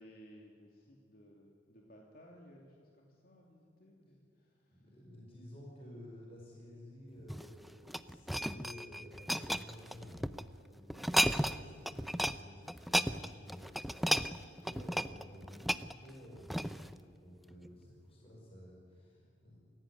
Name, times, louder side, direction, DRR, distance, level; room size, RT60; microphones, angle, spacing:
voice 1, 0.0-5.0 17.6-17.9 19.2-19.5, equal, 55° left, 0 dB, 2.8 m, -59 dB
voice 2, 4.7-10.3 10.7-14.1 14.5-19.6, left 1 dB, 35° left, -3 dB, 5.5 m, -53 dB
sound 1, 7.2-10.4 10.9-11.6 11.9-12.4 12.7-16.9 17.5-17.7, equal, ahead, 0.6 m, -34 dB
29.0 x 16.5 x 9.7 m, 2.3 s
head